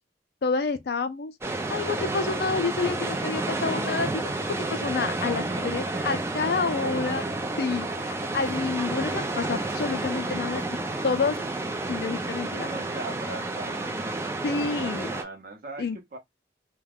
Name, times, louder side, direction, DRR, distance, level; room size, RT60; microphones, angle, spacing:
voice 1, 0.4-4.3 4.7-7.3 7.6-10.6 11.0-11.4 11.9-12.7 14.4-15.1 15.8-16.0, left 4 dB, 60° left, 0.4 m, -29 dB
sound 1, 1.4-15.2, right 2 dB, 15° right, 0.3 m, -30 dB
voice 2, 5.1-7.4 12.4-16.2, right 2 dB, 50° right, 0.7 m, -41 dB
2.4 x 2.2 x 3.3 m
head